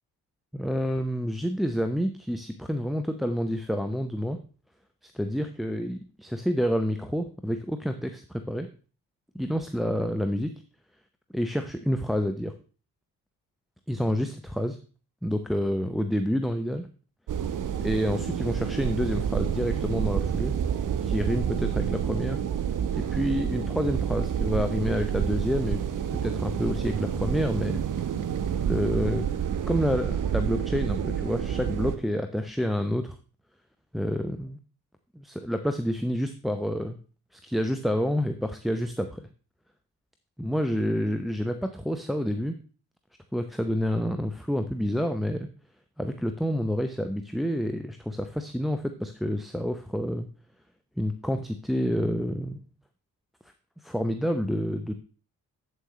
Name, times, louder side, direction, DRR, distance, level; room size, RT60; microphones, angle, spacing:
voice 1, 0.5-4.4 5.0-8.7 9.3-10.5 11.3-12.5 13.9-14.8 15.2-16.9 17.8-20.5 21.0-22.4 22.9-25.8 26.1-27.8 28.6-29.3 29.7-33.1 33.9-34.6 35.1-37.0 37.3-39.3 40.4-42.6 43.3-45.5 46.0-50.3 51.0-52.7 53.8-54.9, equal, ahead, 7 dB, 0.6 m, -28 dB
sound 1, 17.3-32.0, right 8 dB, 45° right, 1.0 m, -29 dB
8.3 x 7.8 x 3.1 m, 0.38 s
figure-of-eight pair, 40°, 46 cm